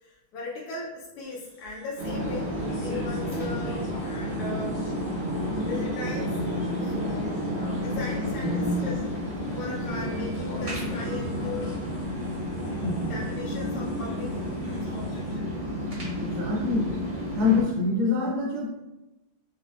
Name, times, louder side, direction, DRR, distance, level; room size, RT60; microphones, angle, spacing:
voice 1, 0.0-4.8 5.6-6.4 6.8-7.3 7.8-9.0 9.5-11.8 13.0-14.4 14.7-15.5, left 3 dB, 85° left, -5 dB, 1.6 m, -38 dB
sound 1, 1.2-15.3, equal, 60° left, 1.3 m, -45 dB
sound 2, 2.0-17.6, equal, 35° right, 0.8 m, -31 dB
voice 2, 8.4-8.8 12.8-13.2 16.2-17.0 17.4-18.7, left 3 dB, 80° right, -1 dB, 1.8 m, -26 dB
4.8 x 3.3 x 2.3 m, 1.0 s
omnidirectional pair, 2.4 m